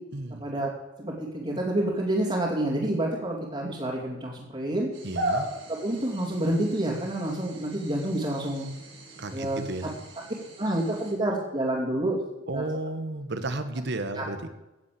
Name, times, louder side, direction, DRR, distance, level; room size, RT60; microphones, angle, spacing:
voice 1, 0.4-0.7 1.0-4.9 5.7-8.7 9.3-9.9 10.6-12.2 12.5-12.6 14.2-14.3, right 1 dB, 30° right, -6 dB, 2.7 m, -28 dB
sound 1, 4.9-11.1, right 1 dB, 85° right, 6.5 m, -37 dB
voice 2, 5.0-5.5 9.2-9.9 12.5-14.5, right 2 dB, 60° right, 10 dB, 1.4 m, -33 dB
16.5 x 7.3 x 7.6 m, 0.98 s
head